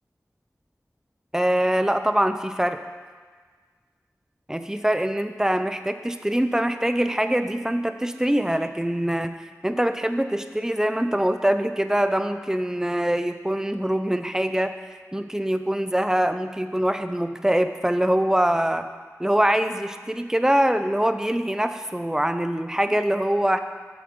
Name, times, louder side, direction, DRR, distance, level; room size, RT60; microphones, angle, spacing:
voice 1, 1.3-2.8 4.5-9.3 9.6-14.7 15.1-18.9 19.2-23.6, right 1 dB, 10° right, 9 dB, 0.5 m, -23 dB
7.9 x 7.8 x 5.2 m, 1.5 s
wide cardioid pair, 60°, 6 cm